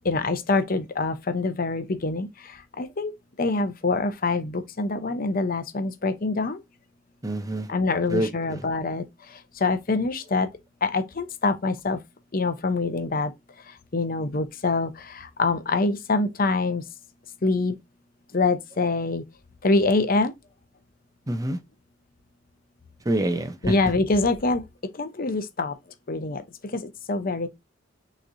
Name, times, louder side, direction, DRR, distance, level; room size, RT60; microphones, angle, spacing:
voice 1, 0.0-2.3 2.8-3.1 3.4-6.6 7.7-9.0 9.6-10.5 10.8-12.0 12.3-13.3 13.9-16.8 17.4-17.7 18.3-19.2 19.6-20.3 23.6-24.6 25.0-25.7 26.1-26.4 26.7-27.5, left 3 dB, 50° left, 0.7 m, -25 dB
voice 2, 7.2-7.7 8.1-8.7 21.3-21.6 23.0-23.7, right 1 dB, 20° right, 0.6 m, -27 dB
6.3 x 3.1 x 2.6 m
head